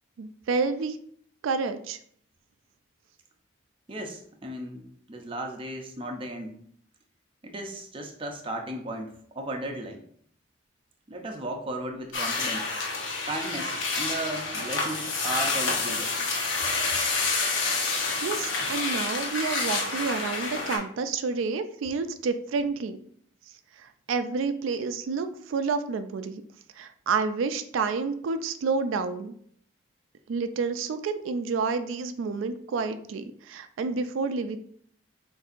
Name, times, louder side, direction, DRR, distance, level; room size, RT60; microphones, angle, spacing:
voice 1, 0.2-1.0 1.4-2.0 18.2-23.0 23.8-26.4 26.8-29.3 30.3-34.6, right 4 dB, 85° right, 9 dB, 0.3 m, -29 dB
voice 2, 3.9-6.6 7.4-10.0 11.1-12.7 13.2-16.2, right 1 dB, 25° right, 3 dB, 0.5 m, -35 dB
sound 1, 12.1-20.8, left 3 dB, 75° left, 1.0 m, -28 dB
6.4 x 2.6 x 2.5 m, 0.62 s
head